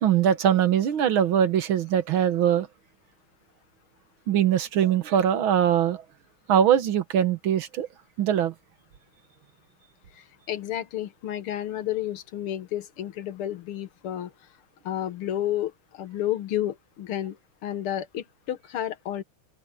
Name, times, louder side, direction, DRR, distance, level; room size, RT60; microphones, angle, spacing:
voice 1, 0.0-2.7 4.3-6.0 6.5-7.9 8.2-8.5, right 9 dB, 70° right, 1.9 m, -22 dB
voice 2, 10.1-14.3 14.8-19.2, left 12 dB, 85° left, 2.1 m, -31 dB
open air
omnidirectional pair, 2.4 m